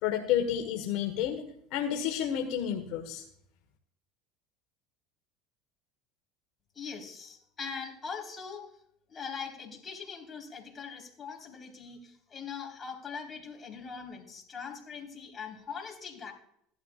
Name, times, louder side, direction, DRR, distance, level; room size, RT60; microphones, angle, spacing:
voice 1, 0.0-3.2, left 9 dB, 70° left, 4 dB, 1.4 m, -30 dB
voice 2, 6.7-8.6 9.1-16.3, left 6 dB, 30° left, 1 dB, 4.1 m, -41 dB
16.0 x 12.0 x 2.5 m, 0.69 s
supercardioid pair, 100°, 0 cm